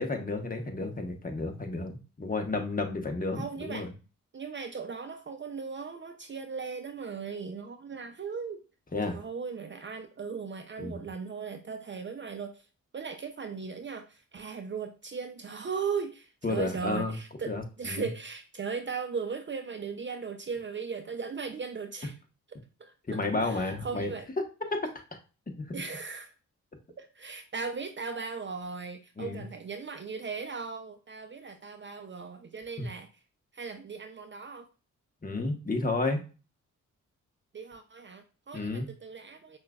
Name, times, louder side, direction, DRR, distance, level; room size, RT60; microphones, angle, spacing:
voice 1, 0.0-3.9 8.9-9.2 10.8-11.0 16.4-17.1 17.5-18.0 23.1-24.1 24.7-24.8 25.6-25.7 29.2-29.4 35.2-36.2 38.5-38.9, left 2 dB, 25° left, 3 dB, 1.1 m, -31 dB
voice 2, 3.4-3.9 4.3-8.6 9.1-12.7 12.9-22.1 22.5-24.3 25.7-26.3 27.0-33.1 33.5-34.7 37.5-39.6, right 5 dB, 35° right, 7 dB, 0.6 m, -38 dB
5.5 x 2.5 x 2.3 m, 0.33 s
supercardioid pair, 55°, 34 cm